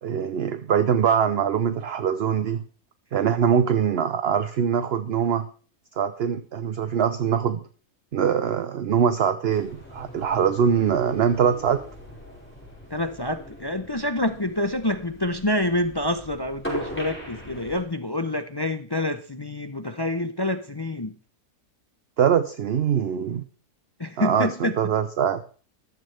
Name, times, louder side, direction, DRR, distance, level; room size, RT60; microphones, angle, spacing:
voice 1, 0.0-2.6 3.1-5.5 6.0-7.6 8.1-11.8 22.2-23.4 24.2-25.4, right 7 dB, 55° right, 11 dB, 0.8 m, -23 dB
sound 1, 9.5-17.8, equal, 5° left, 5.3 m, -40 dB
voice 2, 12.9-21.1 24.0-24.7, left 1 dB, 40° left, 9 dB, 0.3 m, -27 dB
14.0 x 13.5 x 3.4 m, 0.41 s
omnidirectional pair, 1.6 m